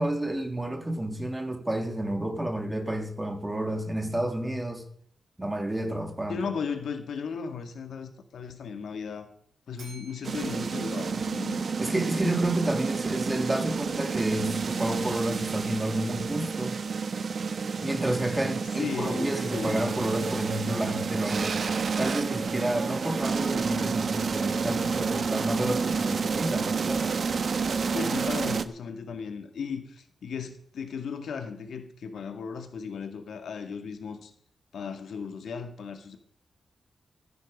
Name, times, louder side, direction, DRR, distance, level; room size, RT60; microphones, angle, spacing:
voice 1, 0.0-4.8 5.4-6.4 11.8-16.8 17.8-21.6 22.0-27.2, right 1 dB, 15° right, 1.8 m, -30 dB
voice 2, 6.3-9.3 9.7-11.6 18.8-19.9 27.9-34.3 34.7-36.2, left 6 dB, 90° left, 1.7 m, -36 dB
Bell, 9.8-12.0, right 2 dB, 70° right, 5.8 m, -53 dB
sound 1, 10.2-28.6, right 5 dB, 50° right, 0.8 m, -30 dB
15.5 x 10.5 x 5.1 m
wide cardioid pair, 150°, 0 cm